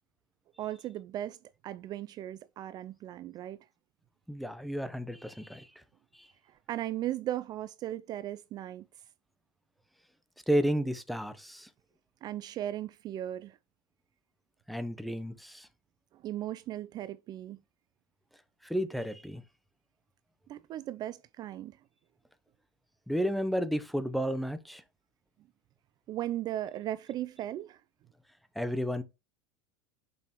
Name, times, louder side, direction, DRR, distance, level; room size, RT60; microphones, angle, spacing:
voice 1, 0.6-1.4 1.6-3.6 6.5-8.9 12.2-13.6 16.1-17.6 20.5-21.8 26.1-27.8, right 13 dB, 35° right, 0.4 m, -37 dB
voice 2, 4.3-5.7 6.1-6.3 10.5-11.7 14.7-15.7 18.6-19.4 23.1-24.8 28.6-29.0, equal, ahead, 0.8 m, -32 dB
6.9 x 5.2 x 3.0 m
hypercardioid pair, 90°, 11 cm